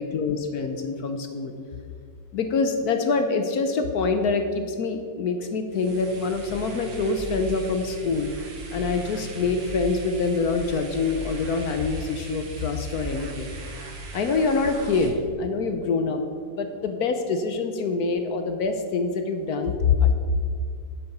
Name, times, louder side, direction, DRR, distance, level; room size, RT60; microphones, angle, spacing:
voice 1, 0.0-1.5 2.3-8.3 8.7-13.5 14.1-20.1, left 4 dB, 65° left, 6 dB, 1.0 m, -25 dB
sound 1, 5.7-15.1, right 2 dB, 70° right, 2.2 m, -38 dB
8.7 x 7.9 x 5.8 m, 2.2 s
omnidirectional pair, 2.1 m